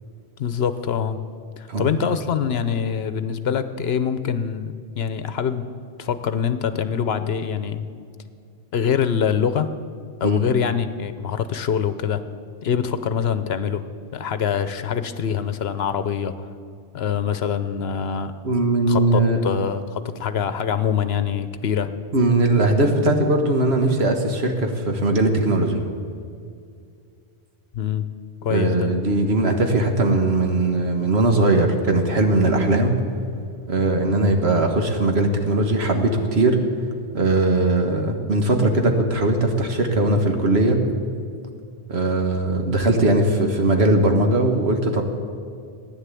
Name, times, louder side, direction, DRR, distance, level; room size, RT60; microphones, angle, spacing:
voice 1, 0.4-1.2 1.6-5.7 6.0-7.8 8.7-9.7 10.2-12.2 12.6-13.8 14.1-16.3 16.9-18.3 18.9-21.9 27.7-28.1 28.4-28.9, left 7 dB, 70° left, 11 dB, 1.0 m, -24 dB
voice 2, 18.4-19.4 22.1-25.8 28.5-33.0 33.7-36.6 37.1-40.8 41.9-45.0, right 2 dB, 70° right, 4 dB, 1.7 m, -19 dB
15.0 x 10.0 x 8.4 m, 2.3 s
omnidirectional pair, 1.1 m